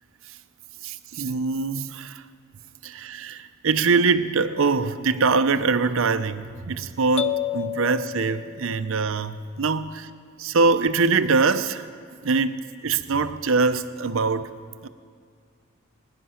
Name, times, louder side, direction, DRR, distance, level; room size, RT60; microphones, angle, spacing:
voice 1, 0.8-2.2 2.8-10.1 10.4-11.9 12.2-14.5 14.8-14.9, right 4 dB, 65° right, 12 dB, 0.6 m, -23 dB
sound 1, 7.2-9.1, left 11 dB, 30° left, 0.3 m, -30 dB
21.5 x 10.5 x 5.7 m, 2.1 s
head